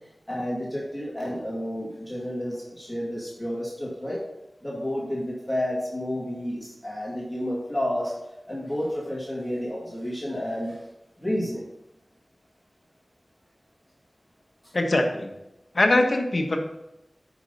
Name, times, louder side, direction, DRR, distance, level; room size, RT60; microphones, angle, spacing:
voice 1, 0.3-4.2 4.6-8.1 8.5-10.8 11.2-11.6, left 1 dB, 10° left, -6 dB, 2.5 m, -30 dB
voice 2, 14.7-15.3 15.7-16.6, left 2 dB, 55° left, 3 dB, 1.3 m, -22 dB
9.8 x 5.5 x 4.1 m, 0.90 s
wide cardioid pair, 75°, 0 cm